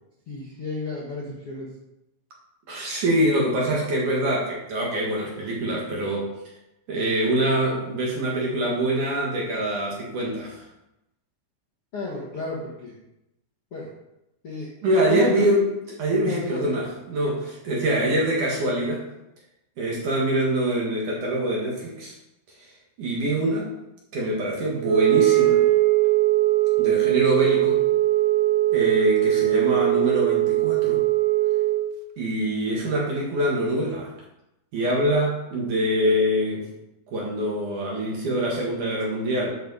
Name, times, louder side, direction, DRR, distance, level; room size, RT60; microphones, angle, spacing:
voice 1, 0.3-1.7 11.9-12.9 13.7-13.9 14.4-15.5 16.3-16.6, left 2 dB, 60° left, -6 dB, 1.5 m, -31 dB
voice 2, 2.7-6.3 6.9-10.7 14.8-19.1 19.8-22.1 22.6-22.7 23.0-23.7 24.1-25.6 26.8-27.8 28.7-31.0 32.2-34.1 34.7-36.7 37.1-39.5, right 1 dB, 55° right, -3 dB, 2.3 m, -24 dB
Wind instrument woodwind instrument, 24.8-31.9, right 16 dB, 85° right, 3.3 m, -20 dB
13.5 x 7.2 x 4.2 m, 0.90 s
omnidirectional pair, 5.8 m